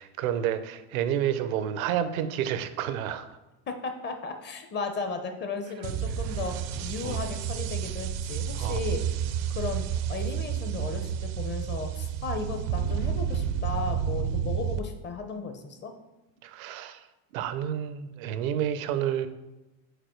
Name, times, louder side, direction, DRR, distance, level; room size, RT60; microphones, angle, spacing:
voice 1, 0.0-3.3 7.0-7.2 8.6-8.8 16.4-17.0 17.3-19.3, right 10 dB, 85° right, 11 dB, 0.6 m, -30 dB
voice 2, 3.7-6.5 6.8-9.0 9.5-15.9, left 4 dB, 25° left, 7 dB, 0.7 m, -35 dB
sound 1, 5.8-14.8, right 8 dB, 45° right, 0.4 m, -30 dB
5.1 x 4.3 x 4.4 m, 1.0 s
supercardioid pair, 115°, 41 cm